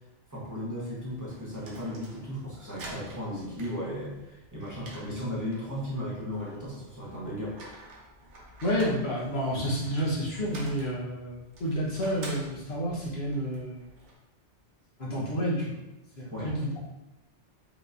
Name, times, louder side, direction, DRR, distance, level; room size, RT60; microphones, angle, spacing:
voice 1, 0.3-7.6 16.3-16.5, equal, 15° right, -7 dB, 1.2 m, -35 dB
sound 1, 1.0-14.2, right 1 dB, 70° right, 1.1 m, -49 dB
voice 2, 8.6-13.8 15.0-15.8 16.2-16.8, equal, 60° left, -5 dB, 1.3 m, -30 dB
4.9 x 3.1 x 2.6 m, 0.97 s
omnidirectional pair, 1.2 m